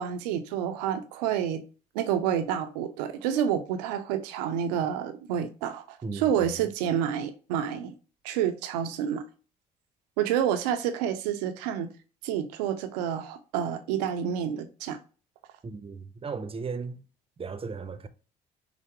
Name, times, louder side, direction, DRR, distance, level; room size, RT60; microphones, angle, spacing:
voice 1, 0.0-1.6 1.9-7.9 8.2-9.2 10.2-11.9 12.2-15.0, right 9 dB, 85° right, 0.5 m, -29 dB
voice 2, 6.0-6.6 15.6-17.0 17.4-18.1, right 4 dB, 30° right, 0.6 m, -36 dB
5.8 x 2.1 x 3.0 m
hypercardioid pair, 50°, 20 cm